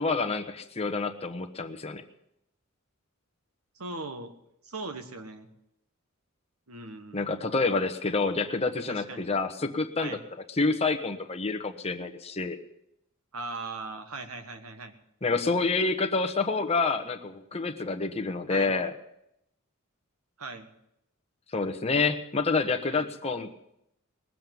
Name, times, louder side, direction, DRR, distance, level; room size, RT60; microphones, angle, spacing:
voice 1, 0.0-2.0 7.1-10.2 10.6-12.6 15.2-18.9 21.5-23.5, left 3 dB, 30° left, 5 dB, 1.1 m, -28 dB
voice 2, 3.7-4.3 4.6-5.5 6.7-7.3 8.9-9.3 10.0-10.2 13.3-15.0 18.5-18.8 20.4-20.7 22.9-23.1, right 3 dB, 90° right, 8 dB, 1.5 m, -39 dB
19.5 x 7.6 x 9.3 m, 0.80 s
head